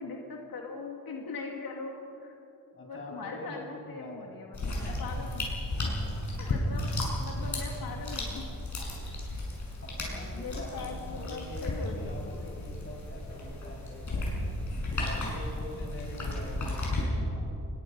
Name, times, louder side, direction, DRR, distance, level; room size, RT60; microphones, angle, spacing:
voice 1, 0.0-2.3 2.8-5.4 5.8-5.9 6.4-6.9 7.2-8.4 9.3-9.4 10.3-12.5, left 4 dB, 85° left, 0 dB, 2.5 m, -41 dB
voice 2, 2.7-4.7 6.7-7.0 9.8-14.6 15.0-17.5, left 1 dB, 35° left, -2 dB, 7.0 m, -45 dB
sound 1, 4.5-17.0, left 1 dB, 55° left, 6.5 m, -34 dB
27.5 x 22.5 x 5.5 m, 2.8 s
wide cardioid pair, 155°, 35 cm